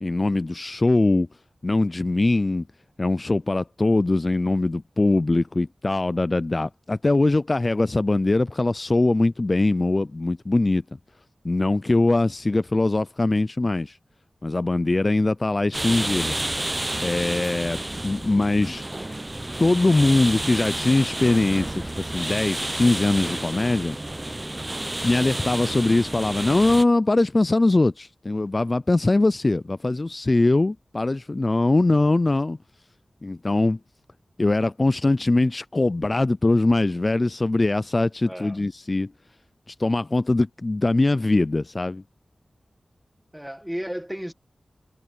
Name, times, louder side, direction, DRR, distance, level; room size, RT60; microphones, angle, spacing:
voice 1, 0.0-1.3 1.6-2.6 3.0-10.8 11.4-14.0 14.4-16.3 17.0-18.8 19.6-24.0 25.0-32.6 33.2-33.8 34.4-39.1 39.7-42.0, left 2 dB, 35° left, 0.3 m, -22 dB
sound 1, 15.7-26.8, right 1 dB, 20° right, 0.7 m, -30 dB
voice 2, 38.2-38.6 43.3-44.3, equal, 5° right, 1.7 m, -33 dB
wide cardioid pair, 90°, 0 cm